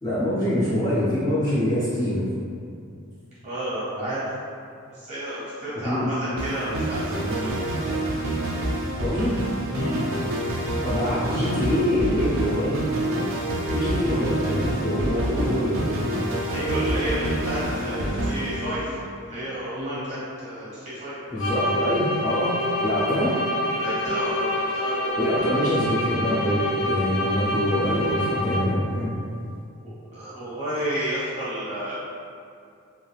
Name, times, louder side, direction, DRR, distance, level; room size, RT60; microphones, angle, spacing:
voice 1, 0.0-2.3 5.8-6.0 9.0-9.4 10.8-12.8 13.7-16.0 21.3-22.5 22.8-23.3 25.2-29.1, equal, 15° left, -11 dB, 0.4 m, -24 dB
voice 2, 3.4-4.2 4.9-7.9 9.7-10.0 14.5-14.6 16.5-19.0 19.3-21.2 23.7-25.3 29.8-32.0, right 1 dB, 30° right, -11 dB, 1.3 m, -31 dB
sound 1, 6.4-19.3, right 1 dB, 60° right, 0.4 m, -27 dB
sound 2, 21.4-28.9, left 1 dB, 65° left, 0.6 m, -27 dB
3.2 x 2.4 x 2.3 m, 2.4 s
head